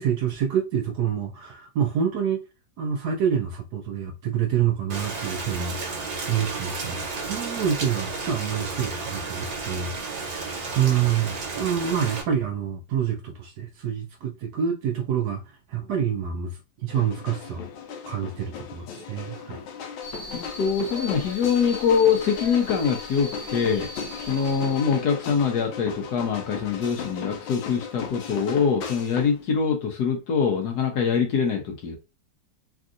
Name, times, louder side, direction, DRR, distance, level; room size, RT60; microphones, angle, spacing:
voice 1, 0.0-2.4 2.8-5.8 6.3-17.6 18.1-19.6, right 8 dB, 70° right, 1.0 m, -27 dB
Rain, 4.9-12.2, right 4 dB, 55° right, 1.3 m, -32 dB
sound 1, 16.9-29.4, left 6 dB, 85° left, 1.4 m, -37 dB
sound 2, 20.0-25.0, left 1 dB, 30° right, 0.8 m, -40 dB
voice 2, 20.3-23.9 24.3-32.0, left 6 dB, 65° left, 1.1 m, -24 dB
3.5 x 2.6 x 2.4 m
omnidirectional pair, 2.1 m